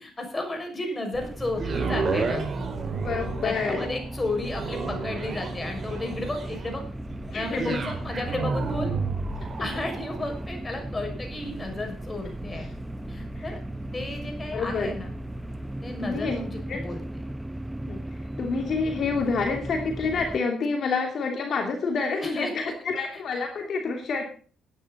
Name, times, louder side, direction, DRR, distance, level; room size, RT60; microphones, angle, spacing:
voice 1, 0.0-2.5 3.4-6.8 7.3-8.9 9.6-12.7 13.1-13.6 13.9-15.1 15.8-17.0 22.2-22.7, left 2 dB, 20° left, 3 dB, 6.3 m, -33 dB
sound 1, 1.1-20.4, right 1 dB, 10° right, 0.7 m, -37 dB
sound 2, 1.5-15.7 16.3-16.4, right 4 dB, 45° right, 4.3 m, -33 dB
voice 2, 3.0-3.9 7.3-7.8 9.6-9.7 12.6-12.7 13.4-13.5 14.5-14.9 16.0-16.4 16.7-16.8 17.9-24.2, left 4 dB, 60° left, 2 dB, 2.6 m, -28 dB
17.5 x 10.0 x 4.2 m, 0.42 s
cardioid pair, 90°, 0 cm